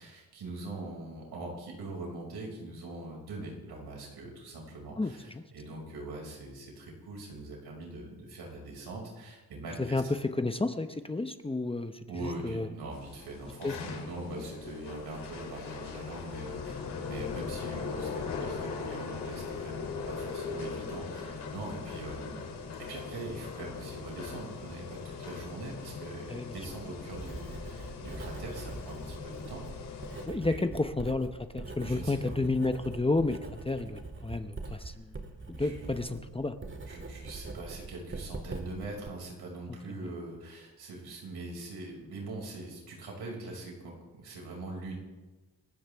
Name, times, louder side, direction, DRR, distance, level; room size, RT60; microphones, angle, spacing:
voice 1, 0.0-10.0 12.1-22.5 22.8-29.6 30.1-30.6 31.8-32.3 34.8-35.0 35.6-36.2 36.9-45.0, right 2 dB, 80° right, -1 dB, 5.9 m, -42 dB
voice 2, 5.0-5.4 9.8-12.7 13.6-13.7 17.2-17.4 26.3-26.5 30.3-35.1 35.5-36.6, left 2 dB, 15° left, 8 dB, 0.9 m, -31 dB
sound 1, 12.9-30.3, left 5 dB, 80° left, 3.3 m, -40 dB
Writing, 26.4-39.1, right 3 dB, 30° right, 2.2 m, -43 dB
27.5 x 14.5 x 3.6 m, 1.2 s
cardioid pair, 85°, 39 cm